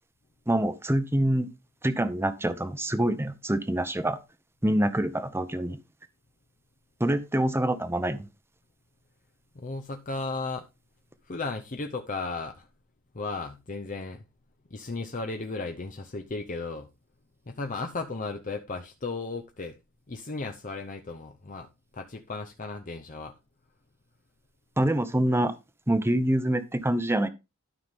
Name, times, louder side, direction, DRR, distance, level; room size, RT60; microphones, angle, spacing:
voice 1, 0.5-1.5 1.8-4.2 4.6-5.8 7.0-8.3 24.8-25.5 25.9-27.3, right 1 dB, 10° right, 0.8 m, -25 dB
voice 2, 9.5-10.7 11.2-12.7 13.1-14.2 14.7-16.9 17.5-19.8 20.1-23.4, left 3 dB, 40° left, 0.7 m, -35 dB
12.5 x 5.7 x 3.5 m
head